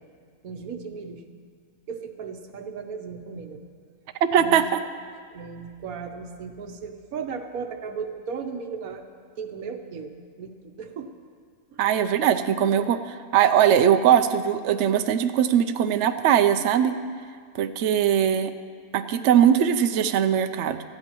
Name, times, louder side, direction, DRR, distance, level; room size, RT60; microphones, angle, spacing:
voice 1, 0.4-1.2 1.9-3.6 4.4-4.6 5.3-9.0 9.4-11.1 11.7-11.9 12.9-13.0, right 5 dB, 85° right, 6 dB, 1.4 m, -36 dB
voice 2, 4.2-4.8 11.8-16.9 17.5-18.5 18.9-20.8, right 9 dB, 65° right, 9 dB, 0.8 m, -20 dB
18.5 x 14.0 x 3.0 m, 2.1 s
omnidirectional pair, 1.5 m